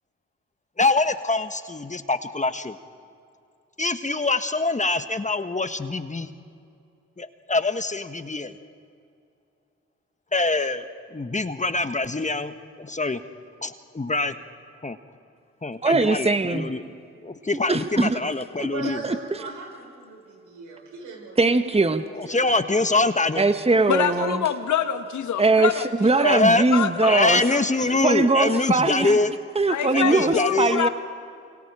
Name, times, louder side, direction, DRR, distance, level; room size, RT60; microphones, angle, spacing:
voice 1, 0.8-2.8 3.8-6.3 7.2-8.5 10.3-10.9 11.1-12.5 12.8-13.2 13.6-14.4 14.8-15.0 15.6-16.8 17.2-19.0 22.2-23.5 26.2-26.7 27.0-29.3 29.9-30.8, left 3 dB, 25° left, 10 dB, 1.5 m, -24 dB
voice 2, 15.8-16.7 17.7-18.2 18.6-18.7 19.0-19.4 21.4-22.0 23.4-24.4 25.4-25.7 26.0-27.4 28.0-29.2 29.5-30.9, right 3 dB, 20° right, 9 dB, 1.4 m, -21 dB
voice 3, 18.7-21.5 22.1-22.4, right 3 dB, 80° right, -1 dB, 6.5 m, -38 dB
voice 4, 23.9-26.3 26.7-27.2 27.5-27.6 29.7-30.9, left 9 dB, 70° left, 9 dB, 1.6 m, -26 dB
28.0 x 27.0 x 5.0 m, 2.5 s
hypercardioid pair, 40°, 31 cm